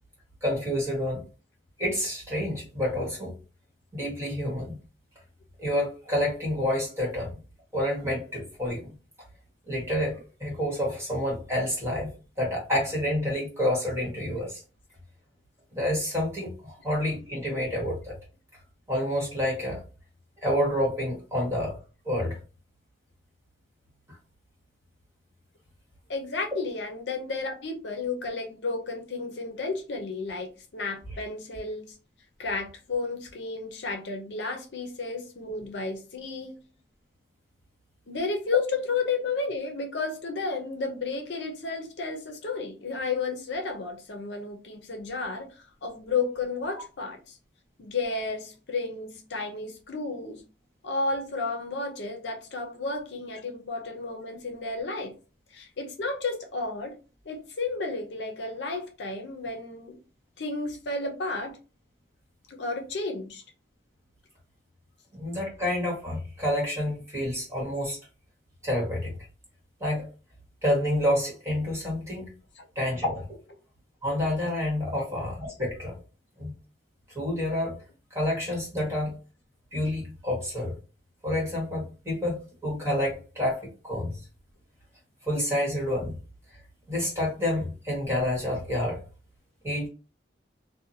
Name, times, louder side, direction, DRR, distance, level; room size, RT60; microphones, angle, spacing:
voice 1, 0.4-1.2 1.8-3.3 3.9-4.8 5.6-7.3 7.7-9.0 9.7-14.6 15.7-18.1 18.9-19.8 20.4-21.7 22.0-22.4 65.1-68.0 68.6-69.2 69.8-70.1 70.6-72.3 72.7-73.4 74.0-75.9 76.4-76.5 77.1-77.7 78.1-79.2 79.7-80.7 81.2-84.2 85.2-86.2 86.9-89.0 89.6-89.9, left 1 dB, 15° right, 1.3 m, -28 dB
voice 2, 26.1-31.9 32.4-36.6 38.1-47.4 47.8-50.4 50.8-55.1 55.5-57.0 57.2-60.0 60.4-61.6 62.5-63.4 72.6-72.7 75.0-75.1, left 3 dB, 70° left, 0.6 m, -32 dB
2.7 x 2.2 x 2.7 m
head